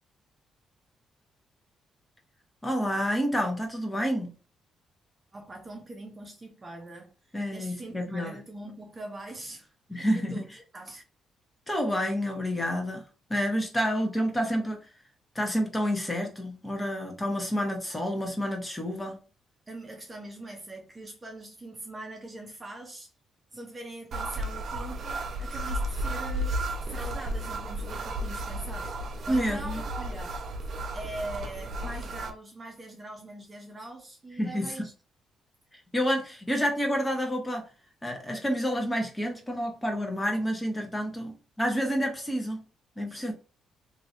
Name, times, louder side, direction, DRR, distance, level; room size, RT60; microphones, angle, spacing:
voice 1, 2.6-4.3 7.3-8.4 9.9-10.4 11.7-13.0 13.3-14.9 15.3-19.2 29.3-29.8 34.4-34.9 35.7-37.7 38.0-42.6 43.0-43.3, equal, 15° left, 1.1 m, -29 dB
voice 2, 5.3-7.1 7.5-10.4 10.7-11.0 19.7-23.1 23.5-29.0 29.3-30.4 30.9-34.9 43.1-43.3, right 2 dB, 25° right, 0.7 m, -42 dB
sound 1, 24.1-32.3, right 1 dB, 55° right, 0.6 m, -33 dB
3.0 x 2.7 x 2.8 m
cardioid pair, 90°, 0 cm